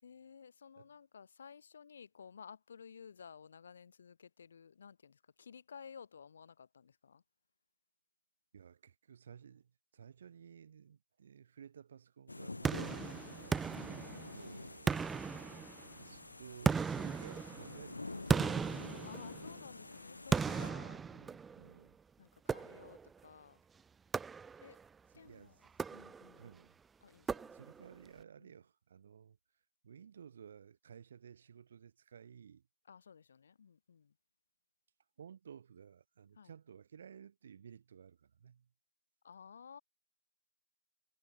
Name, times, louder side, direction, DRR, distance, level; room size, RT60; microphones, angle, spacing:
voice 1, 0.0-7.2 12.9-13.1 13.7-14.3 19.0-21.1 22.2-23.6 24.6-24.8 25.1-25.6 25.9-26.5 27.0-27.6 28.4-28.5 32.9-34.1 36.4-36.5 39.2-39.8, left 6 dB, 50° left, 5.7 m, -55 dB
voice 2, 8.5-13.6 14.3-15.2 16.0-18.8 20.7-22.0 25.1-25.6 26.4-26.8 27.5-29.4 29.8-32.6 35.2-38.7, right 7 dB, 45° right, 4.5 m, -55 dB
sound 1, 12.3-20.7, left 2 dB, 75° left, 1.5 m, -48 dB
sound 2, 12.6-14.5 14.9-16.0 16.7-19.7 20.3-21.7 22.5-23.1 24.1-24.8 25.7-26.5 27.3-27.9, right 5 dB, 5° right, 0.5 m, -36 dB
figure-of-eight pair, 145°, 0 cm